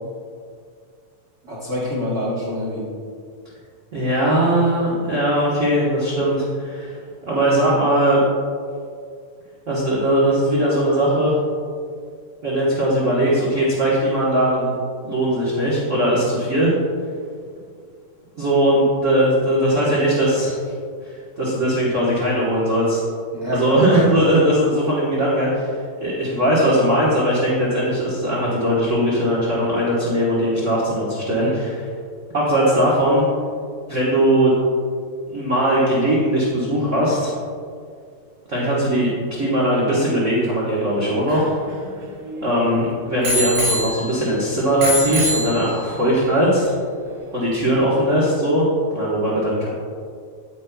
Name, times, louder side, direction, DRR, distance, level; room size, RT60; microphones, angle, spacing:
voice 1, 1.4-2.8 23.4-24.0 42.6-42.9, left 1 dB, 85° right, -6 dB, 0.6 m, -25 dB
voice 2, 3.9-6.9 7.2-8.2 9.7-11.3 12.4-14.7 15.0-16.7 18.4-20.6 21.0-23.0 23.4-25.7 26.0-31.9 32.3-33.2 33.9-34.6 35.3-37.3 38.5-41.5 42.4-46.7 47.3-48.6 48.9-49.7, right 1 dB, 45° right, -7 dB, 0.9 m, -19 dB
Bicycle bell, 40.9-42.6 43.2-44.4 44.8-46.1 46.8-46.9, left 1 dB, 70° right, 2.1 m, -25 dB
9.5 x 9.3 x 2.3 m, 2.2 s
omnidirectional pair, 3.3 m